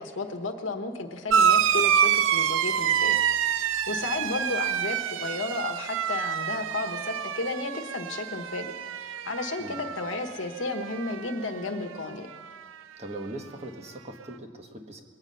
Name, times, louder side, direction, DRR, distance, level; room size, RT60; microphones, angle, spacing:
voice 1, 0.0-3.2 3.5-8.7 9.0-12.3, left 3 dB, 75° left, 4 dB, 1.1 m, -33 dB
sound 1, 1.3-10.3 10.6-11.4 12.5-12.6, right 8 dB, 80° right, 0.4 m, -27 dB
voice 2, 13.0-15.0, right 1 dB, 35° right, 3 dB, 1.3 m, -40 dB
22.0 x 9.0 x 5.5 m, 2.2 s
head